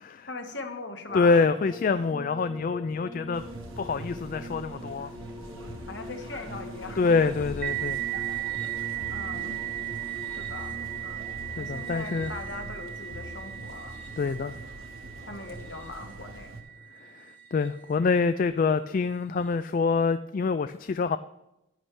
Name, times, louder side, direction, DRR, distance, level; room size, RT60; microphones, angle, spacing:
voice 1, 0.3-1.4 5.9-7.3 8.3-8.4 9.1-9.6 10.4-10.8 11.0-11.3 11.6-14.0 15.3-16.5, left 3 dB, 60° left, 5 dB, 1.4 m, -40 dB
voice 2, 1.1-3.4 3.8-5.1 7.0-8.0 11.6-12.3 14.2-14.6 17.0-21.2, left 4 dB, 40° left, 12 dB, 0.3 m, -26 dB
sound 1, 1.1-16.3 17.2-17.9 19.3-19.5, left 1 dB, 10° left, 1.1 m, -45 dB
sound 2, 3.3-16.6, right 1 dB, 85° right, 1.9 m, -43 dB
sound 3, 7.6-16.9, right 15 dB, 45° right, 0.8 m, -36 dB
11.5 x 10.0 x 3.3 m, 0.88 s
head